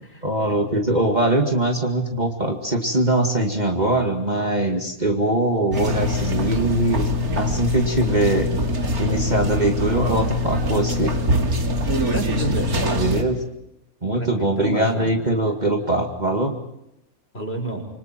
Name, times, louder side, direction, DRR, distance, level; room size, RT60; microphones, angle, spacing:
voice 1, 0.2-7.1 7.4-8.5 9.0-11.1 12.9-13.4 14.0-16.6, right 1 dB, 30° right, 3 dB, 2.4 m, -22 dB
sound 1, 5.7-13.2, left 1 dB, 90° right, 2.8 m, -23 dB
voice 2, 12.1-12.7 14.2-15.1 17.3-17.8, right 1 dB, 40° left, 3 dB, 5.5 m, -29 dB
28.0 x 25.0 x 4.6 m, 0.82 s
omnidirectional pair, 1.5 m